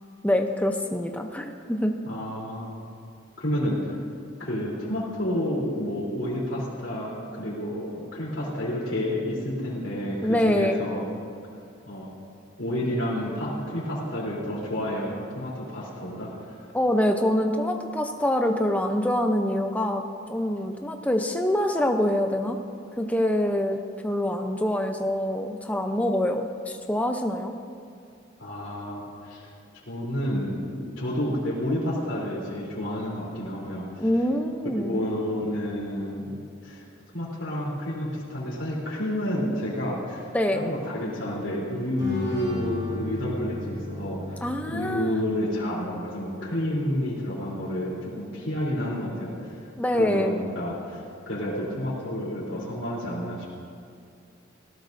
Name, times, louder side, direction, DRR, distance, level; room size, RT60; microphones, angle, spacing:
voice 1, 0.2-1.9 10.2-10.8 16.7-20.0 20.3-22.6 23.0-27.5 34.0-35.0 40.3-40.7 44.4-45.1 49.8-50.4, left 1 dB, 5° left, 4 dB, 0.6 m, -25 dB
voice 2, 2.1-2.7 3.4-4.0 4.4-11.1 11.8-12.1 12.6-16.7 28.4-29.5 29.9-34.1 34.7-36.3 36.6-36.8 37.1-49.6 50.0-53.4, left 1 dB, 70° left, -6 dB, 3.5 m, -30 dB
sound 1, 42.0-45.6, left 1 dB, 25° right, 3.3 m, -35 dB
19.0 x 17.5 x 2.7 m, 2.4 s
head